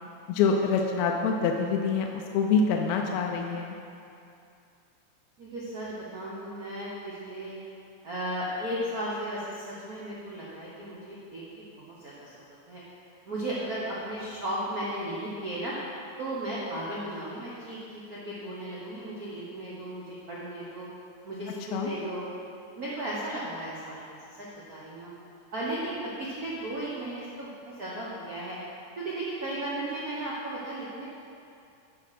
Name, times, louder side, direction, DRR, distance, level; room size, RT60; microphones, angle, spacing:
voice 1, 0.3-3.8 21.7-21.9, left 5 dB, 80° left, 2 dB, 1.8 m, -26 dB
voice 2, 5.4-7.6 8.0-12.8 13.3-15.7 16.2-20.9 21.2-22.2 22.7-25.1 25.5-28.6 29.0-31.0, right 1 dB, 60° right, -7 dB, 0.9 m, -35 dB
10.0 x 5.1 x 5.8 m, 2.5 s
omnidirectional pair, 3.4 m